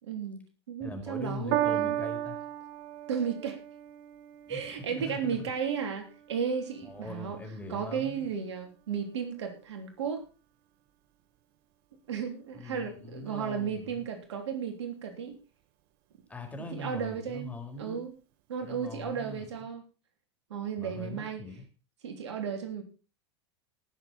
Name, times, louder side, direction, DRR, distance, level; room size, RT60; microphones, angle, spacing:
voice 1, 0.0-1.9 3.1-3.6 4.5-7.4 7.7-10.2 12.1-15.4 16.7-17.5 17.8-18.1 18.5-19.8 20.5-21.4 22.0-22.8, right 7 dB, 75° right, 5 dB, 3.3 m, -34 dB
voice 2, 0.8-2.4 4.5-4.6 4.9-5.5 6.8-8.3 12.5-14.1 16.3-18.0 18.6-19.5 20.8-21.6, left 2 dB, 10° left, 3 dB, 4.7 m, -41 dB
Piano, 1.5-8.1 8.9-9.0, right 13 dB, 55° right, 1.4 m, -36 dB
18.5 x 7.4 x 4.3 m, 0.33 s
hypercardioid pair, 90°, 15 cm